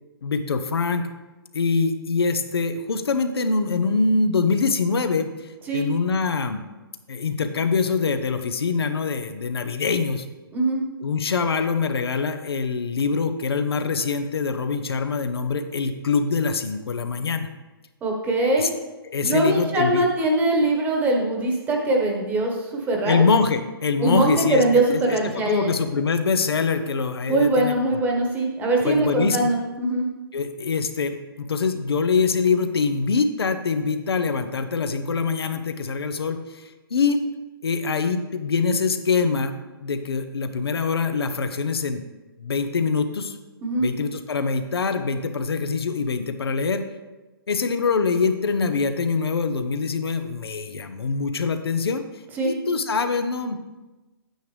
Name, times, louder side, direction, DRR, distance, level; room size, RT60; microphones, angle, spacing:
voice 1, 0.2-1.1 1.5-5.5 5.7-6.7 7.1-10.3 11.0-17.5 18.6-18.7 19.0-20.0 23.0-27.7 28.8-29.4 30.3-37.2 37.6-39.5 39.8-42.0 42.4-43.4 43.8-46.9 47.5-52.0 52.4-53.6, left 4 dB, 75° left, 8 dB, 0.9 m, -24 dB
voice 2, 10.5-10.8 18.0-18.7 19.2-23.2 24.0-25.7 27.3-30.1 43.6-43.9 52.3-52.5, right 2 dB, 15° right, 0 dB, 1.3 m, -22 dB
9.2 x 9.1 x 3.4 m, 1.2 s
hypercardioid pair, 140°, 13 cm